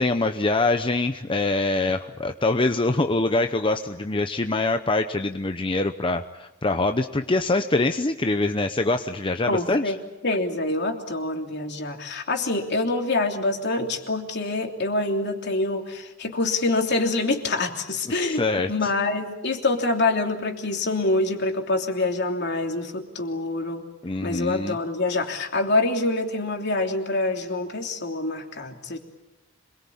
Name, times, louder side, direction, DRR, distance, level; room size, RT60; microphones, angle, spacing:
voice 1, 0.0-9.8 18.1-18.7 24.0-24.8, left 2 dB, 25° left, 7 dB, 0.8 m, -24 dB
voice 2, 9.4-10.0 10.2-23.8 24.2-29.0, left 2 dB, 60° left, 3 dB, 3.1 m, -26 dB
26.5 x 22.0 x 8.6 m, 0.98 s
head